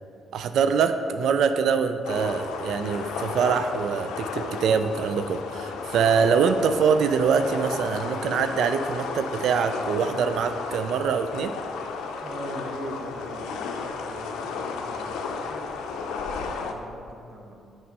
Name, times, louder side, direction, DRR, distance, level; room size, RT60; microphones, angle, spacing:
voice 1, 0.3-11.6, right 6 dB, 75° right, 9 dB, 0.3 m, -24 dB
sound 1, 2.0-16.7, left 5 dB, 90° left, 0.5 m, -33 dB
voice 2, 12.2-17.5, right 1 dB, 40° right, 0 dB, 1.1 m, -41 dB
6.0 x 5.4 x 4.7 m, 2.6 s
cardioid pair, 90°, 0 cm